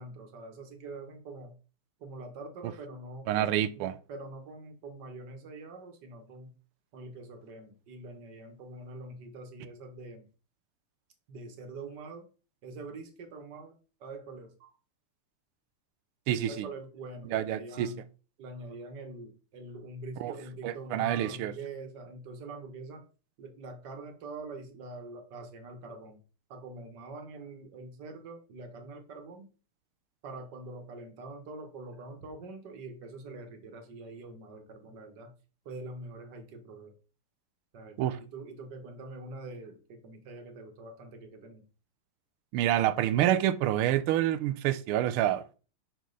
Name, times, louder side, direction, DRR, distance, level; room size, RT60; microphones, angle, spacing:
voice 1, 0.0-1.5 2.0-6.5 6.9-10.2 11.3-12.2 12.6-13.8 14.0-14.7 16.4-18.0 18.4-23.0 23.4-26.2 26.5-29.5 30.2-35.3 35.7-36.9 37.7-41.6, right 2 dB, 55° right, 1.8 m, -44 dB
voice 2, 3.3-3.9 16.3-16.7 17.3-17.9 20.2-20.3 20.6-21.5 38.0-38.2 42.5-45.5, right 12 dB, 80° right, 1.5 m, -27 dB
6.4 x 5.9 x 4.0 m
omnidirectional pair, 2.4 m